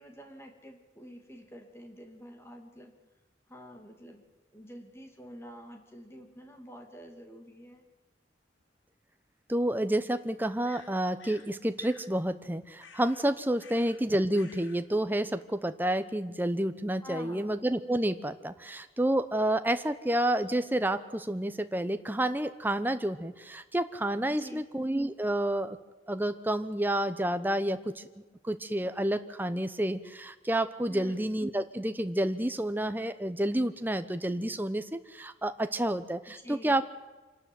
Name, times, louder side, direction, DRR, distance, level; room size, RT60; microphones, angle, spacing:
voice 1, 0.0-2.9 3.5-4.2 4.5-7.8 17.0-17.5 24.3-24.7 30.9-31.3 36.4-36.8, equal, 15° left, 4 dB, 2.6 m, -47 dB
sound 1, 8.6-8.7 10.6-11.5 11.8-12.1 12.8-13.3 13.6-14.0 14.3-14.8, left 5 dB, 90° left, 2.8 m, -52 dB
voice 2, 9.5-25.8 26.1-28.1 28.4-36.8, right 1 dB, 10° right, 9 dB, 0.8 m, -29 dB
26.0 x 12.5 x 9.4 m, 1.2 s
head